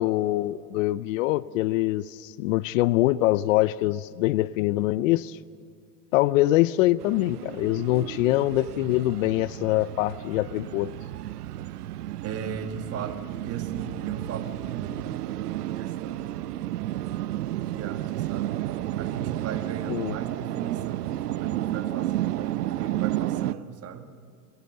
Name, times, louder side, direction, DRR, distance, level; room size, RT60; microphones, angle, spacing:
voice 1, 0.0-5.4 6.1-10.9 19.9-20.1, left 16 dB, 60° left, 18 dB, 0.6 m, -24 dB
sound 1, 7.0-23.5, right 14 dB, 85° right, 0.7 m, -32 dB
voice 2, 12.2-15.0 15.8-17.0 17.7-18.6 19.0-24.1, right 7 dB, 30° right, 7 dB, 1.8 m, -38 dB
25.5 x 14.0 x 7.8 m, 2.1 s
hypercardioid pair, 115°, 45 cm